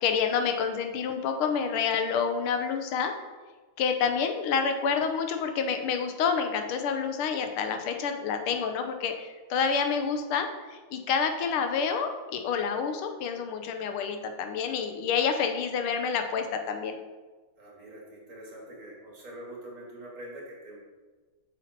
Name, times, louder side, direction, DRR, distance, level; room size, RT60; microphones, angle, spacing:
voice 1, 0.0-3.1 3.8-17.0, left 6 dB, 85° left, 6 dB, 1.7 m, -28 dB
voice 2, 17.6-20.8, right 1 dB, 40° right, -2 dB, 2.4 m, -44 dB
7.5 x 6.1 x 4.3 m, 1.3 s
omnidirectional pair, 2.3 m